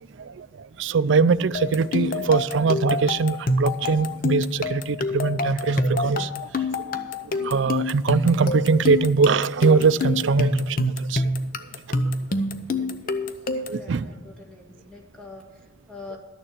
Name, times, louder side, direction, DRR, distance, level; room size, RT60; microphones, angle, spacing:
voice 1, 0.8-6.3 7.4-11.2 13.7-14.1, right 4 dB, 70° right, 0.4 m, -21 dB
sound 1, 1.5-13.9, left 2 dB, 45° left, 0.6 m, -27 dB
voice 2, 13.8-16.2, left 3 dB, 5° left, 1.7 m, -44 dB
12.0 x 6.8 x 7.4 m
head